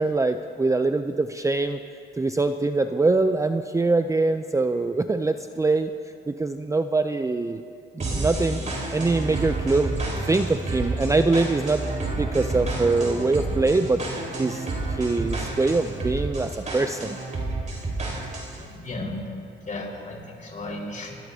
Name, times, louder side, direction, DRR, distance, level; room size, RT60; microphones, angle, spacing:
voice 1, 0.0-1.8 2.2-5.9 6.3-7.6 7.9-9.9 10.2-11.8 12.2-14.0 14.3-17.2, right 3 dB, 15° right, 8 dB, 0.5 m, -23 dB
sound 1, 8.0-18.6, right 2 dB, 35° right, 4.3 m, -30 dB
voice 2, 18.6-21.2, left 2 dB, 40° left, -1 dB, 4.8 m, -35 dB
25.5 x 20.0 x 2.8 m, 2.5 s
cardioid pair, 90°, 20 cm